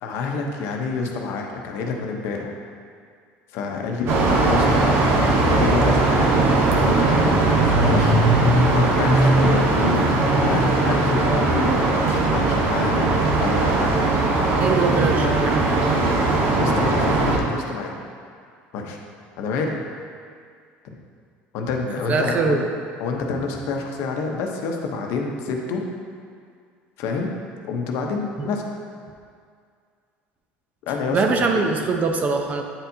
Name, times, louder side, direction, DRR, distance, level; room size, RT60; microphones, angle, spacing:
voice 1, 0.0-2.5 3.5-5.0 5.5-6.3 6.8-8.2 8.7-13.1 13.4-14.0 16.5-18.0 18.7-19.0 19.4-19.8 20.8-20.9 21.5-22.6 23.0-25.8 27.0-27.3 27.6-28.6 30.8-31.6, left 4 dB, 65° left, 1 dB, 0.8 m, -27 dB
sound 1, 4.1-17.4, right 2 dB, 55° right, 0.9 m, -19 dB
voice 2, 14.6-15.7 22.1-22.6 28.4-28.5 31.1-32.6, right 4 dB, 35° right, 3 dB, 0.6 m, -22 dB
8.8 x 4.4 x 2.7 m, 2.1 s
cardioid pair, 125°, 5 cm